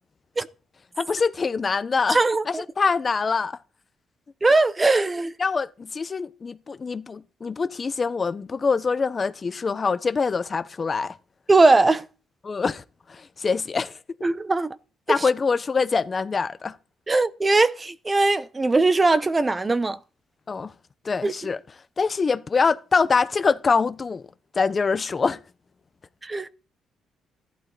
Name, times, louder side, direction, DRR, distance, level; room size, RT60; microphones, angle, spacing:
voice 1, 1.0-2.2 2.5-3.5 5.4-11.1 12.4-12.8 13.1-13.9 15.1-16.7 20.5-20.7 21.0-21.6 22.0-24.3 24.5-25.4, left 5 dB, 35° left, 0.8 m, -24 dB
voice 2, 2.1-2.6 4.4-5.3 11.5-12.1 14.2-14.8 15.1-15.3 17.1-20.0 21.2-21.3 26.2-26.5, right 3 dB, 25° right, 0.9 m, -20 dB
14.5 x 11.5 x 4.1 m
cardioid pair, 90°, 0 cm